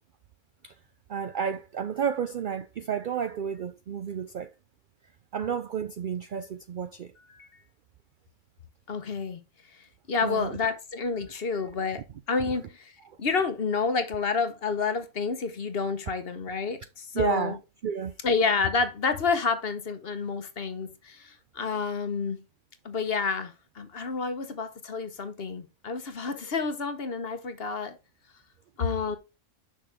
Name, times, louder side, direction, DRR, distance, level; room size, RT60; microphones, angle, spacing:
voice 1, 1.1-4.5 5.3-7.1 10.2-10.5 17.1-17.6 17.8-18.1, right 7 dB, 75° right, 0.4 m, -31 dB
voice 2, 8.9-9.4 9.7-17.6 18.2-22.4 22.8-28.0 28.8-29.2, left 4 dB, 50° left, 1.1 m, -29 dB
6.4 x 5.9 x 3.4 m
omnidirectional pair, 1.4 m